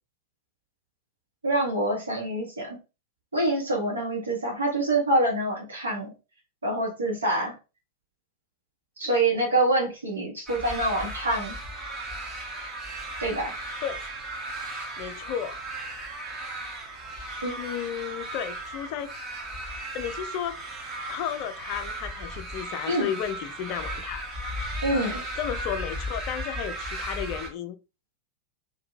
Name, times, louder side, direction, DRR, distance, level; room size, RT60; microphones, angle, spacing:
voice 1, 1.4-2.8 3.3-6.1 6.6-7.5 9.0-11.6 13.2-13.6 17.4-17.5 22.9-23.1 24.8-25.2, right 1 dB, 75° right, 1.1 m, -26 dB
sound 1, 10.5-27.5, right 1 dB, 25° right, 0.8 m, -36 dB
voice 2, 15.0-15.6 17.6-19.1 19.9-20.6 21.1-24.2 24.9-27.8, left 9 dB, 45° left, 0.4 m, -33 dB
2.7 x 2.6 x 2.5 m
figure-of-eight pair, 90°, 0 cm